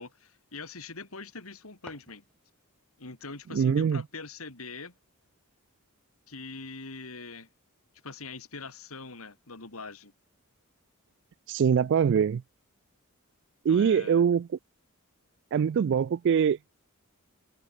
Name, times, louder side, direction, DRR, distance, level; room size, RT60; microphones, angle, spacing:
voice 1, 0.0-2.2 3.0-5.0 6.3-7.5 8.0-10.1 13.7-14.3, left 3 dB, 75° left, 3.4 m, -42 dB
sound 1, 1.7-2.8, left 1 dB, 5° left, 4.2 m, -54 dB
voice 2, 3.5-4.0 11.5-12.4 13.6-14.5 15.5-16.7, right 7 dB, 55° right, 0.3 m, -23 dB
head